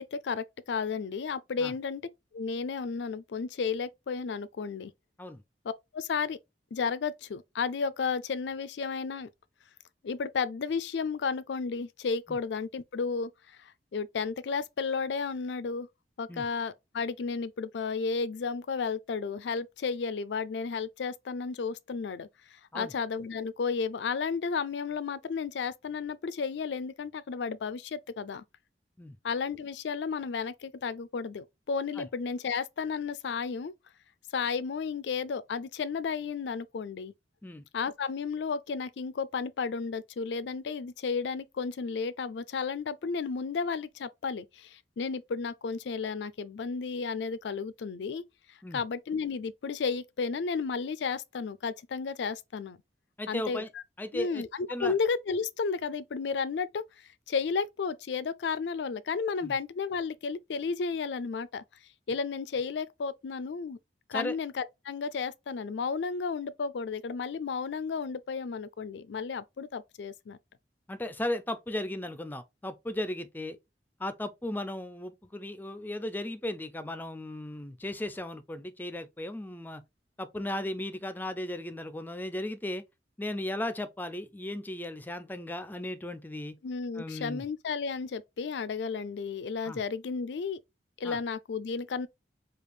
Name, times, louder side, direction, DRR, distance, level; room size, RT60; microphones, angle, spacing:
voice 1, 0.0-2.0 2.3-4.9 5.6-6.4 6.7-9.3 10.0-15.9 16.2-28.4 29.2-33.7 34.3-37.1 37.7-48.2 48.7-52.8 53.3-53.6 54.1-56.8 57.3-61.6 62.1-63.8 64.1-70.4 86.6-90.6 91.0-92.1, left 5 dB, 80° left, 0.4 m, -33 dB
voice 2, 53.2-53.7 54.0-54.4 54.7-54.9 59.4-59.6 64.1-64.4 70.9-73.6 74.0-79.8 80.2-82.8 83.2-86.6 86.9-87.5 89.7-89.8 91.0-91.2, left 1 dB, 10° left, 0.4 m, -36 dB
4.9 x 2.4 x 3.2 m
head